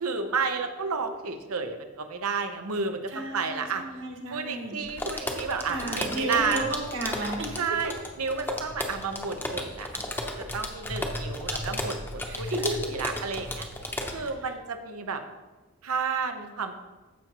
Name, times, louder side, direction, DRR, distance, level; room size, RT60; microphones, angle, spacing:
voice 1, 0.0-3.8 4.3-6.6 7.6-10.0 10.4-12.6 12.9-13.7 14.1-15.2 15.8-16.8, right 5 dB, 90° right, 7 dB, 0.8 m, -31 dB
voice 2, 3.1-4.8 5.7-7.9 12.3-12.9 14.1-14.5, right 2 dB, 60° right, 2 dB, 1.5 m, -33 dB
sound 1, 4.8-14.3, left 1 dB, 10° left, 0.7 m, -34 dB
14.5 x 6.0 x 3.0 m, 1.2 s
head